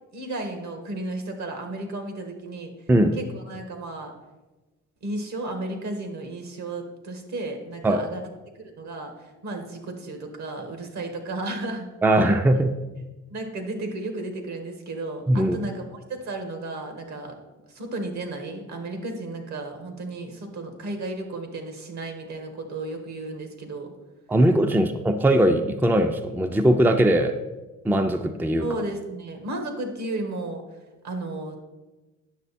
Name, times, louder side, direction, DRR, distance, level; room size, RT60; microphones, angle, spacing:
voice 1, 0.1-2.7 3.2-4.1 5.0-8.2 8.6-11.9 12.2-12.3 13.3-17.4 17.7-23.9 24.7-24.8 28.6-30.6 31.0-31.6, right 2 dB, 65° right, 5 dB, 1.7 m, -33 dB
voice 2, 12.0-12.7 15.3-15.6 24.3-27.3 27.8-28.7, right 1 dB, 5° right, 7 dB, 0.5 m, -20 dB
9.3 x 6.6 x 4.2 m, 1.1 s
cardioid pair, 90°, 30 cm